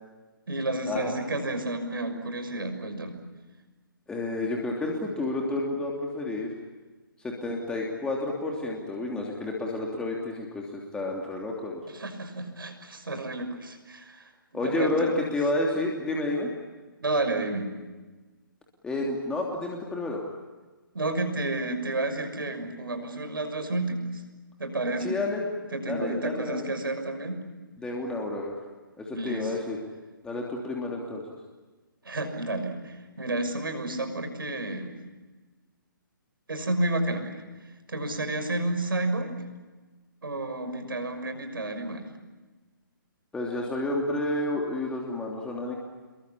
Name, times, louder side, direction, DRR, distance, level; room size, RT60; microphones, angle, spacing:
voice 1, 0.5-3.2 11.9-14.3 14.6-15.2 17.0-17.7 20.9-24.2 24.6-25.2 25.7-27.4 29.1-29.5 32.0-35.0 36.5-37.4 37.9-39.3 40.2-42.1, right 2 dB, 75° right, 7 dB, 6.4 m, -31 dB
voice 2, 4.1-6.5 7.2-10.6 10.9-11.8 14.5-16.5 18.8-20.2 25.0-25.4 25.9-26.7 27.8-28.5 29.0-29.8 30.2-31.2 43.3-45.7, left 2 dB, 5° left, -1 dB, 3.1 m, -30 dB
27.5 x 23.0 x 8.5 m, 1.3 s
figure-of-eight pair, 140°, 12 cm